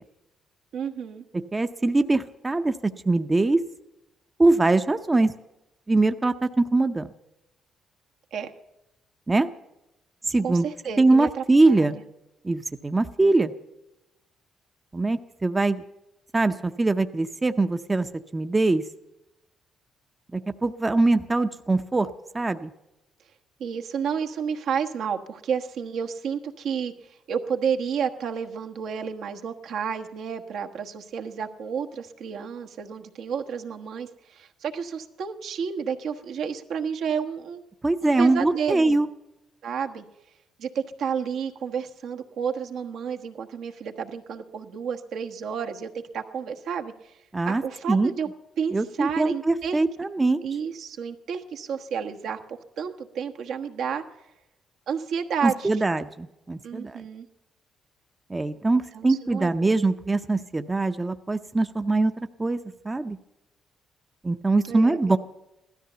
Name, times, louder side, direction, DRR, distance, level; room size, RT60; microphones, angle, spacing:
voice 1, 0.7-1.2 8.3-8.5 10.4-12.0 23.6-37.6 38.0-39.0 39.6-40.0 40.6-47.2 47.4-48.3 48.6-49.8 50.4-54.0 54.9-55.7 56.6-57.3 58.9-59.7 64.7-65.2, right 7 dB, 75° right, 5 dB, 1.2 m, -31 dB
voice 2, 1.5-2.7 3.1-3.6 4.4-5.3 5.9-7.1 9.3-9.5 10.3-10.7 11.0-12.0 12.4-13.5 14.9-15.8 16.3-18.8 20.3-22.1 22.3-22.7 37.8-39.1 47.3-47.6 47.9-48.1 48.7-50.4 55.4-57.0 58.3-62.6 62.8-63.2 64.2-65.2, right 2 dB, 20° right, 9 dB, 0.6 m, -22 dB
15.5 x 13.0 x 6.8 m, 0.93 s
cardioid pair, 90°, 0 cm